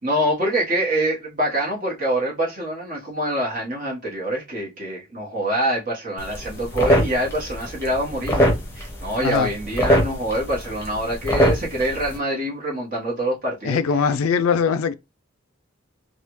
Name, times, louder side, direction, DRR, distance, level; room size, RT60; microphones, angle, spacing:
voice 1, 0.0-13.8, right 1 dB, 40° right, 1.3 m, -25 dB
sound 1, 6.2-12.2, equal, 10° left, 0.8 m, -23 dB
voice 2, 9.2-9.5 13.6-14.9, left 6 dB, 85° left, 0.4 m, -21 dB
3.4 x 2.3 x 3.0 m
head